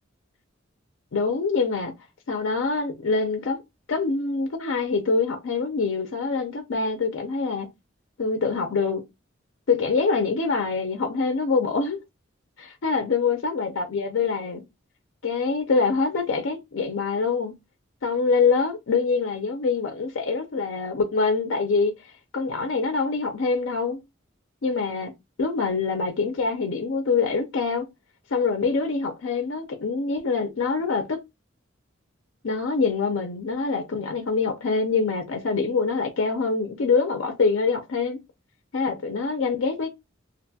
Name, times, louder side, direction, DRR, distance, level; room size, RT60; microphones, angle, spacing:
voice 1, 1.1-1.9 2.3-3.6 3.9-7.7 8.2-9.0 9.7-12.0 12.6-14.6 15.2-17.5 18.0-21.9 22.3-24.0 24.6-25.1 25.4-27.9 28.3-31.2 32.4-38.2 38.7-39.9, left 4 dB, 75° left, 0.5 m, -25 dB
2.5 x 2.2 x 2.7 m
head